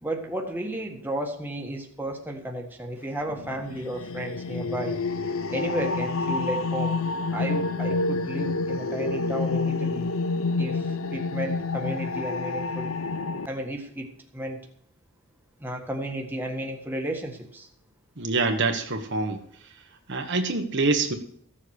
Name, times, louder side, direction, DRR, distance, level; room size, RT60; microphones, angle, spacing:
voice 1, 0.0-5.0 5.5-7.0 7.3-10.1 10.6-12.9 13.5-14.6 15.6-17.7, right 1 dB, 10° right, 1 dB, 1.6 m, -33 dB
sound 1, 3.3-13.5, left 3 dB, 70° left, 0.8 m, -28 dB
voice 2, 18.2-19.4 20.1-21.2, right 3 dB, 55° right, 5 dB, 1.4 m, -25 dB
15.0 x 7.4 x 6.5 m, 0.65 s
head